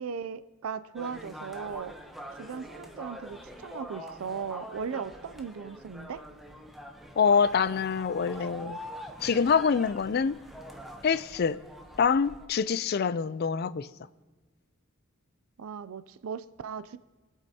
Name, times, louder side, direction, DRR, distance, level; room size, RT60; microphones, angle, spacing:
voice 1, 0.0-1.9 2.3-6.2 15.6-17.0, right 6 dB, 85° right, 0.4 m, -37 dB
sound 1, 1.0-12.5, equal, ahead, 0.8 m, -45 dB
voice 2, 7.2-8.8 9.2-10.4 11.0-11.6 12.0-13.9, left 6 dB, 50° left, 0.4 m, -25 dB
24.0 x 8.2 x 2.8 m
head